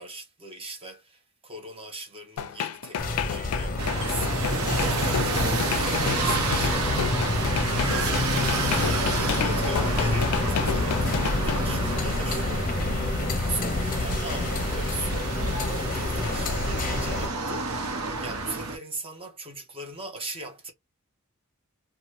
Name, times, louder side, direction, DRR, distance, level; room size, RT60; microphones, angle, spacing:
voice 1, 0.0-4.5 5.2-12.8 13.5-17.7 18.2-20.7, right 2 dB, 25° right, 0.8 m, -39 dB
sound 1, 2.4-11.6, left 8 dB, 85° left, 0.4 m, -31 dB
sound 2, 3.0-17.3, left 2 dB, 40° left, 0.6 m, -28 dB
sound 3, 3.8-18.8, right 3 dB, 75° right, 0.9 m, -30 dB
2.8 x 2.2 x 3.0 m
head